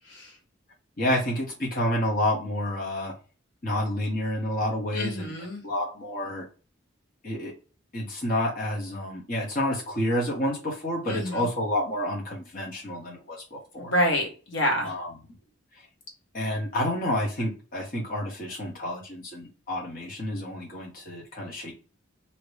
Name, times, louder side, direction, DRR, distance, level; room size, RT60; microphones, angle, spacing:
voice 1, 1.0-3.1 3.6-5.3 5.6-6.4 7.2-7.5 7.9-13.9 14.8-15.1 16.3-21.7, left 1 dB, 45° left, -3 dB, 1.1 m, -29 dB
voice 2, 4.9-5.6 11.1-11.5 13.8-14.9, equal, 65° left, 0 dB, 1.2 m, -27 dB
2.9 x 2.8 x 3.2 m, 0.35 s
head